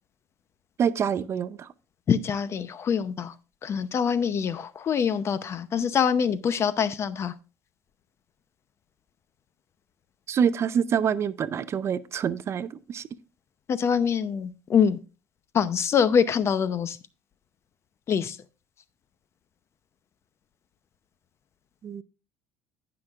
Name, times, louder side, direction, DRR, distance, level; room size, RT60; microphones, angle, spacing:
voice 1, 0.8-1.7 10.3-13.1 21.8-22.0, right 7 dB, 40° right, 0.5 m, -26 dB
voice 2, 2.1-3.3 3.6-7.3 13.7-15.0 15.5-17.0 18.1-18.4, left 7 dB, 40° left, 0.7 m, -24 dB
16.0 x 5.9 x 2.4 m
supercardioid pair, 95°, 7 cm